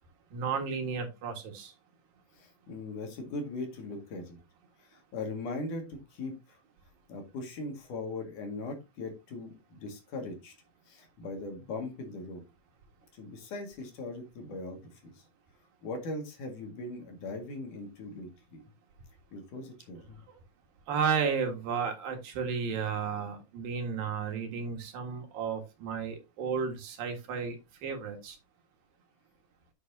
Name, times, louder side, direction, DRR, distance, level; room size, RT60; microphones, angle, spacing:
voice 1, 0.3-1.7 20.9-27.6 27.8-28.4, right 6 dB, 75° right, 4 dB, 3.4 m, -33 dB
voice 2, 2.4-4.4 4.8-6.6 7.1-10.5 10.9-12.4 13.1-15.2 15.8-18.6 19.3-20.2, left 2 dB, 65° left, 4 dB, 3.4 m, -40 dB
8.2 x 8.1 x 2.7 m, 0.24 s
omnidirectional pair, 4.1 m